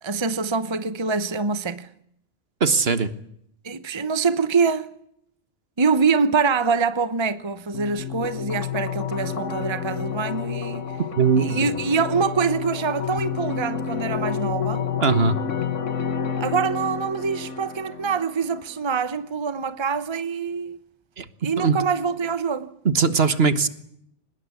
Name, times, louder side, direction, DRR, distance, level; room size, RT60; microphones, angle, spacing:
voice 1, 0.0-1.9 3.6-4.9 5.8-10.8 11.4-14.9 16.4-20.8 21.4-22.7, right 5 dB, 25° right, 1.0 m, -24 dB
voice 2, 2.6-3.1 11.2-11.6 15.0-15.4 21.2-21.3 21.6-21.8 22.8-23.7, right 5 dB, 55° right, 1.6 m, -20 dB
sound 1, 7.7-18.7, left 7 dB, 90° left, 1.8 m, -30 dB
24.0 x 20.5 x 8.5 m
omnidirectional pair, 1.2 m